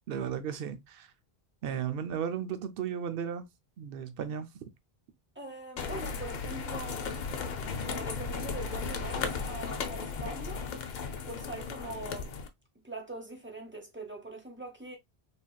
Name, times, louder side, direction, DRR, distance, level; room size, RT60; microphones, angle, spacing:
voice 1, 0.1-1.1 1.6-3.4 3.8-4.5, right 8 dB, 65° right, 0.7 m, -35 dB
voice 2, 5.3-7.3 7.8-10.7 11.2-12.4 12.8-15.0, right 2 dB, 10° right, 0.8 m, -42 dB
sound 1, 5.8-12.5, left 5 dB, 55° left, 0.5 m, -36 dB
3.4 x 2.7 x 2.2 m
omnidirectional pair, 1.1 m